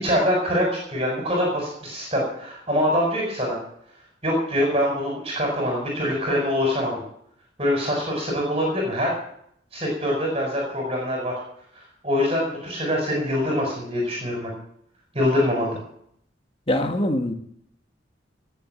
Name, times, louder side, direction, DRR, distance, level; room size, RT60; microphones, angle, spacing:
voice 1, 0.0-3.6 4.2-7.0 7.6-9.1 9.7-11.3 11.7-14.5 15.1-15.8, left 1 dB, 35° right, 0 dB, 4.9 m, -24 dB
voice 2, 16.7-17.3, left 1 dB, 30° left, 5 dB, 1.7 m, -23 dB
18.0 x 7.4 x 7.7 m, 0.68 s
head